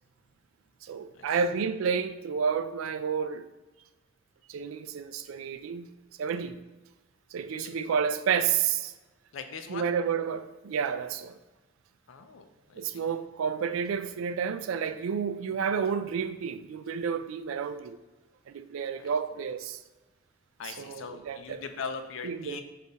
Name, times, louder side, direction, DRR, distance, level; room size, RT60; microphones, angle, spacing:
voice 1, 0.8-3.5 4.5-5.9 6.2-6.6 7.3-8.9 9.7-11.4 12.8-18.0 18.5-19.8 20.6-21.6 22.2-22.6, right 6 dB, 90° right, 0.3 m, -30 dB
voice 2, 9.3-9.9 12.1-13.0 19.0-19.1 20.6-22.6, left 5 dB, 80° left, 0.4 m, -40 dB
5.5 x 2.4 x 3.9 m
head